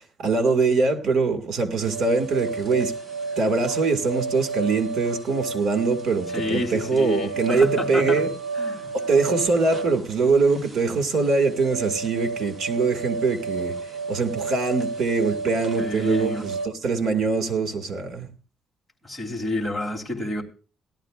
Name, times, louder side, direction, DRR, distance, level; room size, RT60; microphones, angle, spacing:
voice 1, 0.2-2.9 3.4-8.3 8.9-13.7 14.1-18.3, right 4 dB, 65° right, 2.1 m, -23 dB
sound 1, 1.8-16.7, right 3 dB, 25° right, 1.8 m, -32 dB
voice 2, 6.3-8.2 8.5-8.9 15.8-16.5 19.0-20.4, left 1 dB, ahead, 3.2 m, -29 dB
17.5 x 12.5 x 2.5 m
cardioid pair, 120°, 0 cm